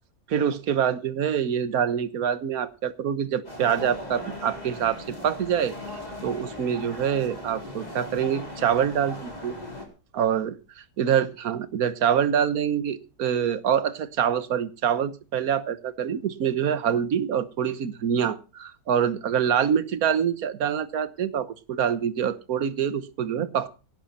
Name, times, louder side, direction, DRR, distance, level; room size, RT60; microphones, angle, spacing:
voice 1, 0.3-5.7 6.2-9.6 10.1-23.7, right 8 dB, 60° right, 14 dB, 1.5 m, -25 dB
sound 1, 3.4-9.9, left 1 dB, 25° left, 4.1 m, -38 dB
18.0 x 11.0 x 4.2 m, 0.33 s
omnidirectional pair, 1.8 m